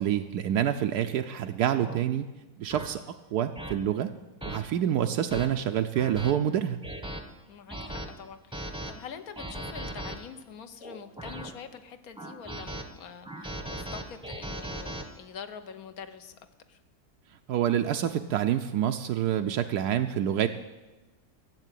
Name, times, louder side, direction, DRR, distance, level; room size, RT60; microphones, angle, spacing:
voice 1, 0.0-2.3 2.6-3.0 3.3-4.1 4.4-6.8 17.5-20.5, right 10 dB, 80° right, 6 dB, 1.2 m, -27 dB
sound 1, 1.0-1.2 1.8-2.0 2.7-2.9 3.6-3.7 4.4-4.6 5.1-5.5 6.0-6.3 6.8-7.2 7.7-8.1 8.5-8.9 9.4-10.2 10.8-11.5 12.2-12.8 13.2-15.0, right 1 dB, 5° right, 0.8 m, -38 dB
voice 2, 7.5-16.4 16.7-16.8, left 7 dB, 65° left, 10 dB, 1.3 m, -45 dB
13.5 x 7.7 x 9.1 m, 1.2 s
omnidirectional pair, 1.7 m